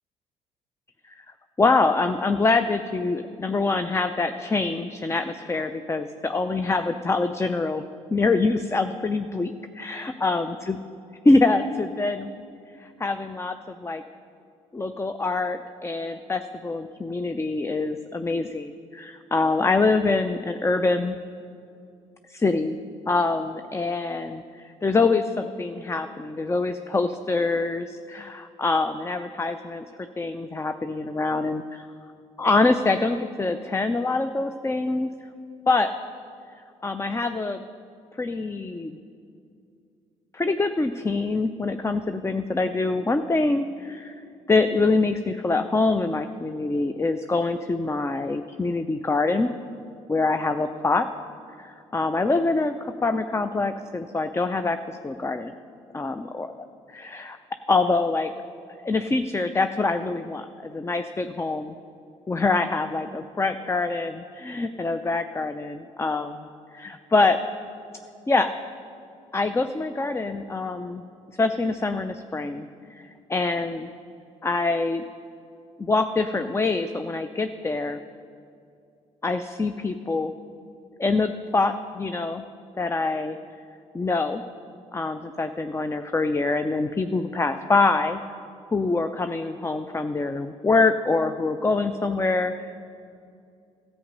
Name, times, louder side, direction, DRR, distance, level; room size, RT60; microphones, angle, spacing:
voice 1, 1.6-7.8 8.1-10.8 11.2-12.3 12.8-14.0 14.7-21.2 22.3-22.8 23.1-31.9 32.4-35.1 35.7-35.9 36.8-37.6 38.2-39.0 40.3-44.1 44.5-49.5 50.1-51.1 51.6-55.5 55.9-56.5 56.9-57.4 57.7-58.3 58.8-61.7 62.3-66.3 66.7-67.4 68.3-68.5 69.3-71.0 71.4-72.7 73.3-73.9 74.4-75.0 75.8-78.0 79.2-80.3 81.0-82.4 82.8-83.4 83.9-84.4 84.9-88.2 88.7-92.8, left 3 dB, 15° left, 9 dB, 0.5 m, -25 dB
13.5 x 8.2 x 5.3 m, 2.4 s
hypercardioid pair, 50°, 16 cm